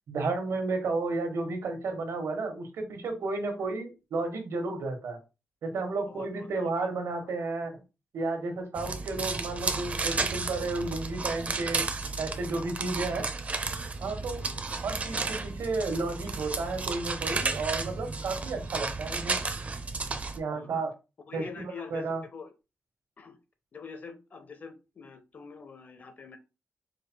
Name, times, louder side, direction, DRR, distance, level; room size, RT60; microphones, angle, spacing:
voice 1, 0.1-5.2 5.6-7.8 8.1-11.8 12.2-13.3 14.0-14.4 14.8-19.4 20.4-20.9 21.3-21.6 21.9-22.2, right 3 dB, 85° right, 1.4 m, -32 dB
voice 2, 6.1-6.7 14.4-14.8 20.5-20.9 21.3-22.5 23.2-23.4 23.7-26.4, left 5 dB, 40° left, 0.6 m, -45 dB
sound 1, 8.7-20.4, right 4 dB, 30° right, 0.5 m, -33 dB
4.9 x 2.1 x 4.5 m
wide cardioid pair, 175°, 5 cm